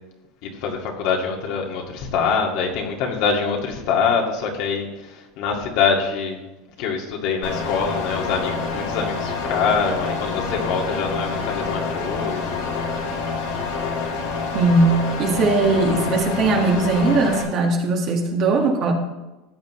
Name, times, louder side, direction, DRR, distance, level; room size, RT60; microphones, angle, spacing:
voice 1, 0.4-6.4 6.8-12.7 13.0-13.3, left 5 dB, 60° left, 1 dB, 2.0 m, -24 dB
sound 1, 7.4-17.4, left 4 dB, 80° left, 3.6 m, -27 dB
voice 2, 14.5-18.9, right 3 dB, 40° right, 2 dB, 1.7 m, -19 dB
14.0 x 9.0 x 3.1 m, 1.1 s
supercardioid pair, 145°, 0 cm